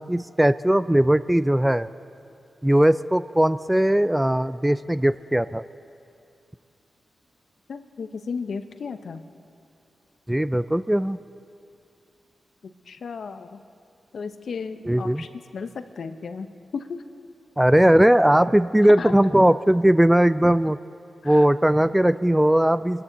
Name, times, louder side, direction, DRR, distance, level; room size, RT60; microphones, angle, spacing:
voice 1, 0.0-1.9 2.6-5.6 10.3-11.2 14.9-15.2 17.6-20.8 21.2-23.0, right 1 dB, 10° right, 15 dB, 0.4 m, -19 dB
voice 2, 7.7-9.2 12.6-13.6 14.1-15.3 15.5-15.7 16.0-16.5 16.7-17.0 19.0-19.1 21.2-21.5, left 5 dB, 75° left, 9 dB, 0.9 m, -34 dB
24.5 x 13.0 x 4.0 m, 2.5 s
cardioid pair, 45°, 0 cm